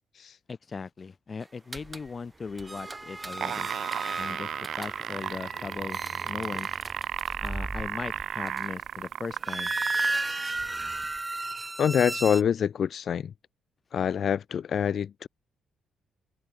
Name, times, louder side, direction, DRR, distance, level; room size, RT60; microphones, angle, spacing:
voice 1, 0.5-3.7 4.2-4.5 4.8-6.7 7.4-9.7, left 5 dB, 35° left, 4.0 m, -38 dB
sound 1, 1.7-2.1 2.5-8.9 9.3-12.4, right 2 dB, 20° right, 0.9 m, -34 dB
sound 2, 3.3-10.2 11.0-11.1, right 10 dB, 65° right, 0.8 m, -34 dB
voice 2, 11.8-13.3 13.9-15.3, left 8 dB, 55° left, 0.9 m, -26 dB
cardioid pair, 95°, 0 cm